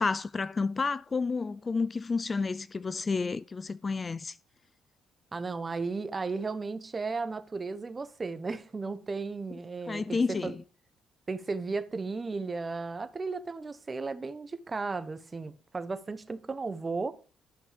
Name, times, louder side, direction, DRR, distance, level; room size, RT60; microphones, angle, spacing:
voice 1, 0.0-4.4 9.9-10.5, left 4 dB, 30° left, 0.4 m, -30 dB
voice 2, 5.3-10.5 11.3-17.1, right 4 dB, 30° right, 1.0 m, -35 dB
11.5 x 6.0 x 5.1 m
cardioid pair, 90°, 0 cm